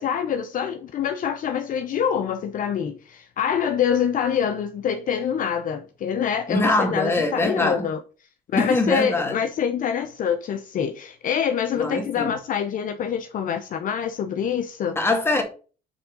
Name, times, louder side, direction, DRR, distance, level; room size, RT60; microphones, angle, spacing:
voice 1, 0.0-8.0 8.5-15.0, left 8 dB, 55° left, 0.7 m, -25 dB
voice 2, 6.5-7.9 8.5-9.4 11.8-12.3 15.0-15.4, left 2 dB, 15° left, 1.9 m, -23 dB
7.7 x 3.6 x 5.1 m
cardioid pair, 110°, 17 cm